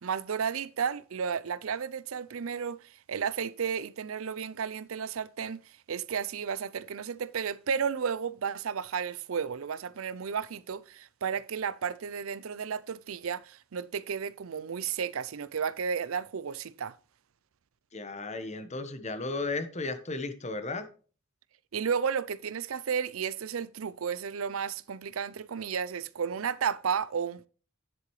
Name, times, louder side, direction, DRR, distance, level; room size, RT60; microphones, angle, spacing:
voice 1, 0.0-2.8 3.1-5.6 5.9-16.9 21.7-27.5, right 6 dB, 90° right, 0.5 m, -33 dB
voice 2, 17.9-20.9, left 3 dB, 35° left, 1.1 m, -34 dB
10.5 x 7.6 x 3.1 m
head